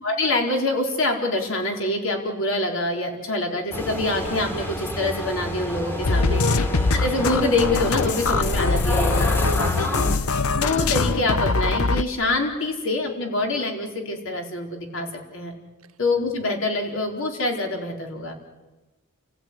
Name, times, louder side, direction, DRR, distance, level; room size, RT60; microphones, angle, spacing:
voice 1, 0.0-6.4 6.9-9.4 10.6-15.5 16.0-18.3, left 2 dB, 65° left, 2 dB, 4.5 m, -25 dB
sound 1, 3.7-10.2, equal, 10° left, 2.1 m, -30 dB
sound 2, 6.0-12.0, left 3 dB, 90° left, 0.9 m, -22 dB
voice 2, 6.1-6.6 9.3-10.2, right 2 dB, 80° right, 8 dB, 1.4 m, -34 dB
30.0 x 15.0 x 9.6 m, 1.2 s
head